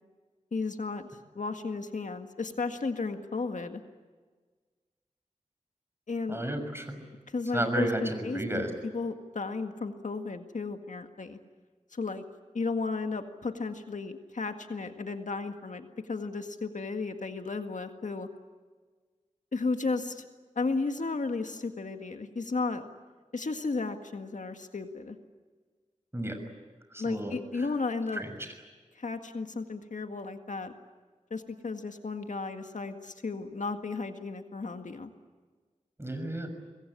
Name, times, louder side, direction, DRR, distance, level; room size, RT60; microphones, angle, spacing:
voice 1, 0.5-1.1 1.4-3.8 6.1-6.4 7.3-11.4 11.9-12.2 12.5-18.3 19.5-20.3 20.6-22.9 23.3-25.2 27.0-28.2 29.0-30.7 31.3-35.1, left 3 dB, 80° left, 6 dB, 1.9 m, -34 dB
voice 2, 6.3-7.0 7.5-8.7 26.1-26.4 26.9-27.3 28.1-28.3 36.0-36.5, right 1 dB, 20° right, 6 dB, 6.3 m, -32 dB
25.0 x 21.5 x 9.9 m, 1.4 s
wide cardioid pair, 50°, 13 cm